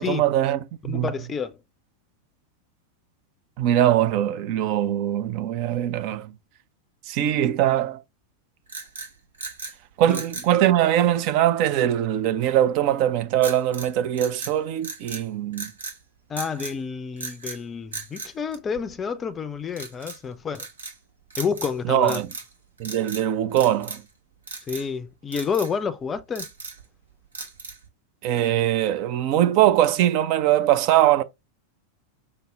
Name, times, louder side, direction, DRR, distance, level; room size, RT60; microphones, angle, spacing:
voice 1, 0.0-1.1 3.6-6.3 7.1-8.0 10.0-15.7 21.9-22.3 22.8-24.0 28.2-31.2, right 12 dB, 45° right, 0.4 m, -22 dB
voice 2, 0.9-1.6 10.1-10.2 16.3-20.7 21.4-22.2 24.7-26.5, left 6 dB, 20° left, 0.5 m, -29 dB
sound 1, 8.7-9.8 10.1-10.5 13.4-13.9 14.2-15.3 15.5-16.0 16.4-16.8 17.2-17.6 17.9-19.1 19.7-20.2 20.6-21.0 21.3-21.8 22.0-22.5 22.8-23.3 23.6-24.1 24.5-24.9 25.3-25.7 26.2-26.9 27.3-27.9, right 4 dB, 70° right, 1.0 m, -37 dB
5.4 x 2.0 x 3.3 m
figure-of-eight pair, 90°, 0 cm